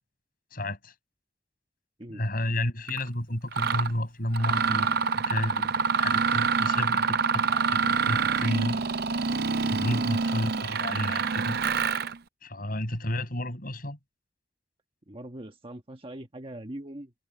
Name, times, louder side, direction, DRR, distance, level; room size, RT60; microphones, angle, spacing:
voice 1, 0.5-0.9 2.1-5.7 6.0-8.9 9.7-11.6 12.4-14.0, left 1 dB, 50° left, 6.4 m, -31 dB
Mechanisms, 2.9-3.0 3.5-3.9 4.3-12.2, right 5 dB, 55° right, 0.5 m, -26 dB
voice 2, 15.1-17.1, right 1 dB, 30° right, 1.3 m, -41 dB
head